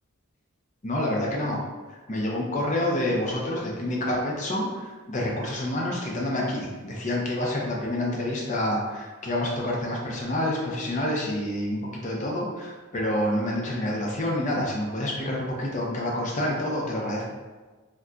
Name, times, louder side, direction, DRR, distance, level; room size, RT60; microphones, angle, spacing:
voice 1, 0.8-1.7 2.1-4.7 5.1-17.2, left 1 dB, 35° left, -2 dB, 0.5 m, -28 dB
2.3 x 2.2 x 3.8 m, 1.3 s
head